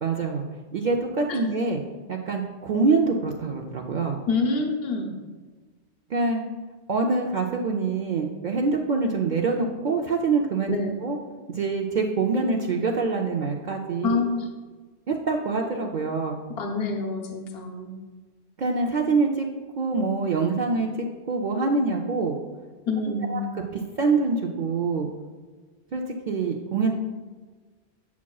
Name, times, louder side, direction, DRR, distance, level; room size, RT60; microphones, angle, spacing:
voice 1, 0.0-0.4 0.7-1.8 2.1-4.2 6.1-6.4 6.9-10.7 11.0-11.2 11.5-14.2 15.1-16.4 18.6-19.5 19.8-22.4 23.3-23.4 23.7-25.1 25.9-26.9, right 4 dB, 55° right, 0 dB, 0.6 m, -25 dB
voice 2, 4.3-5.1 10.7-10.9 14.0-14.5 16.6-18.0 22.9-23.4, left 3 dB, 65° left, 1 dB, 1.0 m, -27 dB
7.2 x 7.1 x 2.3 m, 1.4 s
omnidirectional pair, 1.1 m